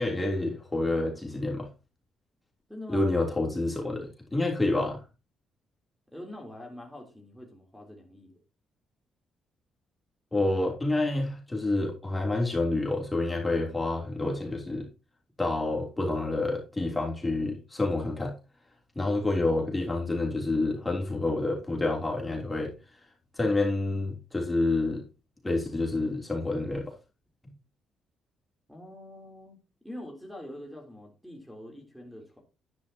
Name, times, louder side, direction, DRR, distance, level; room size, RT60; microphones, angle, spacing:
voice 1, 0.0-1.7 2.9-5.0 10.3-14.9 15.4-18.3 18.9-22.7 23.4-25.0 25.4-26.9, left 2 dB, 15° left, 3.3 m, -28 dB
voice 2, 2.7-3.1 6.1-8.4 28.7-29.6 29.8-32.4, left 1 dB, ahead, 3.4 m, -44 dB
11.0 x 10.0 x 2.9 m
cardioid pair, 90°, 0 cm